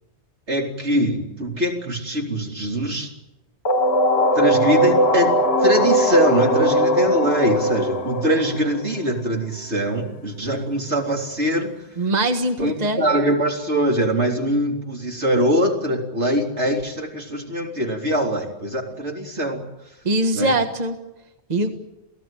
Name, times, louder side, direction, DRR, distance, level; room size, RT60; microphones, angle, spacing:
voice 1, 0.5-3.1 4.4-11.7 12.6-19.7 20.3-20.5, equal, 80° right, 1 dB, 4.1 m, -23 dB
sound 1, 3.7-9.4, equal, 60° left, 1.7 m, -19 dB
voice 2, 12.0-13.0 20.0-21.0 21.5-21.8, right 1 dB, 40° right, 5 dB, 1.7 m, -22 dB
28.5 x 17.0 x 9.2 m, 0.94 s
omnidirectional pair, 1.1 m